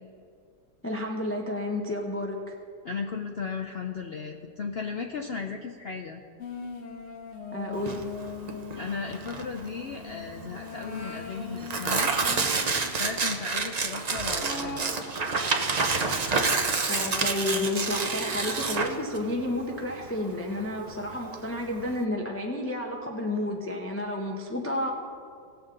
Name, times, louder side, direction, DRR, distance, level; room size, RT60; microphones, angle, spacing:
voice 1, 0.8-2.5 7.5-8.0 16.9-24.9, left 1 dB, 15° left, 0 dB, 0.5 m, -31 dB
voice 2, 2.8-6.2 8.8-12.1 13.0-14.8, left 5 dB, 85° left, 2 dB, 0.5 m, -35 dB
sound 1, 6.4-13.0 14.4-14.8, left 5 dB, 50° left, 1.2 m, -40 dB
Tearing, 7.8-22.0, right 4 dB, 70° right, 0.4 m, -29 dB
18.0 x 7.2 x 3.8 m, 2.3 s
omnidirectional pair, 1.8 m